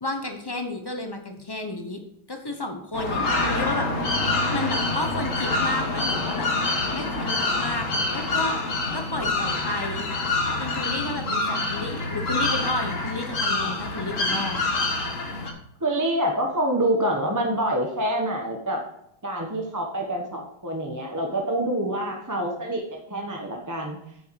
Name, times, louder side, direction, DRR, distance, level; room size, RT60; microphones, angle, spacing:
voice 1, 0.0-2.0 2.3-3.9 4.5-6.5 6.9-8.6 8.9-10.1 10.6-14.6, left 2 dB, 25° left, 4 dB, 0.5 m, -31 dB
sound 1, 2.9-15.5, left 2 dB, 45° left, 1.6 m, -26 dB
voice 2, 15.8-18.8 19.2-24.0, right 1 dB, 15° right, 1 dB, 0.8 m, -26 dB
9.2 x 6.9 x 4.7 m, 0.75 s
omnidirectional pair, 2.1 m